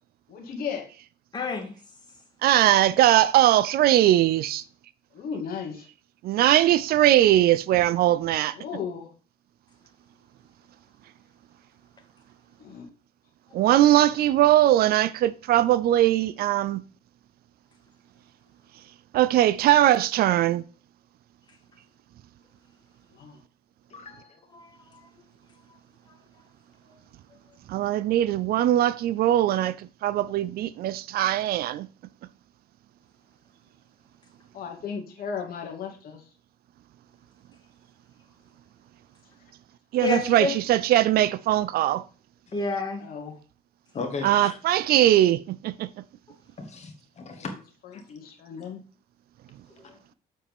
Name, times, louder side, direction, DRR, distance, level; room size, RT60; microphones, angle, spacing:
voice 1, 0.3-0.9 5.1-5.9 8.5-9.1 12.6-12.9 23.1-23.4 34.5-36.2 43.0-43.4 47.2-47.4 48.1-48.8, left 6 dB, 60° left, 2.0 m, -35 dB
voice 2, 1.3-1.8 24.5-25.0 26.9-27.0 40.0-40.5 42.5-43.0 49.8-49.9, left 3 dB, 25° left, 2.1 m, -29 dB
voice 3, 2.4-4.6 6.2-8.8 13.5-16.8 19.1-20.6 27.7-31.9 39.9-42.0 44.2-45.9, right 13 dB, 65° right, 0.4 m, -21 dB
voice 4, 23.9-24.4 43.9-44.6 46.6-47.6 47.9-48.0, left 4 dB, 40° left, 1.9 m, -36 dB
7.4 x 4.3 x 5.3 m
cardioid pair, 110°, 17 cm